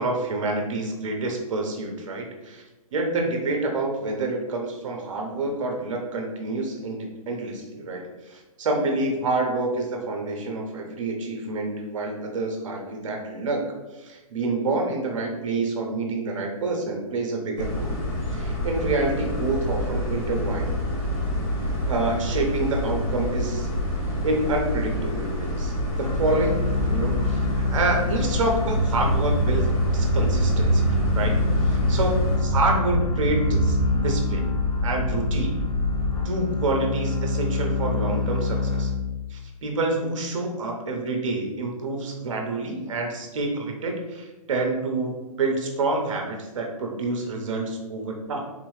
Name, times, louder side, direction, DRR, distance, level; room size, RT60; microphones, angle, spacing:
voice 1, 0.0-2.6 2.9-13.6 13.9-18.0 18.3-20.7 21.8-23.7 24.2-29.7 29.9-34.5 34.8-35.6 36.2-38.9 39.3-48.4, right 2 dB, 55° right, 2 dB, 0.9 m, -28 dB
sound 1, 17.6-32.4, left 1 dB, 25° left, 1.0 m, -28 dB
sound 2, 26.0-39.4, left 3 dB, 75° left, 0.9 m, -27 dB
sound 3, 28.7-36.3, right 1 dB, ahead, 1.3 m, -25 dB
3.7 x 2.9 x 3.1 m, 1.1 s
hypercardioid pair, 170°, 19 cm